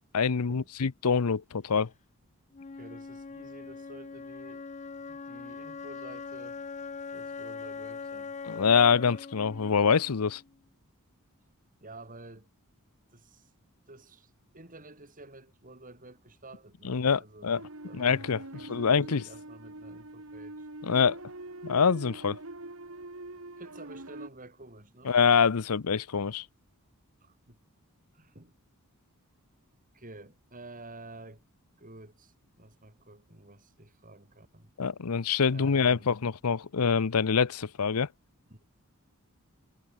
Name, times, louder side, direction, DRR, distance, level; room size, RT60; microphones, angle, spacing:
voice 1, 0.0-1.9 8.5-10.4 16.8-17.6 17.9-19.2 20.8-21.2 21.6-22.4 25.1-26.4 34.8-38.1, left 6 dB, 80° left, 0.7 m, -25 dB
Wind instrument woodwind instrument, 2.5-10.5, left 4 dB, 30° left, 0.5 m, -42 dB
voice 2, 2.8-4.6 5.1-6.6 7.1-8.3 11.8-12.5 13.1-13.5 13.9-17.5 17.8-18.3 18.5-20.7 23.6-25.1 27.2-27.6 28.1-28.5 29.9-31.4 31.8-34.7 35.5-36.1 38.5-38.6, right 2 dB, 40° right, 6.5 m, -50 dB
sound 1, 17.5-24.3, right 2 dB, 65° right, 3.2 m, -44 dB
head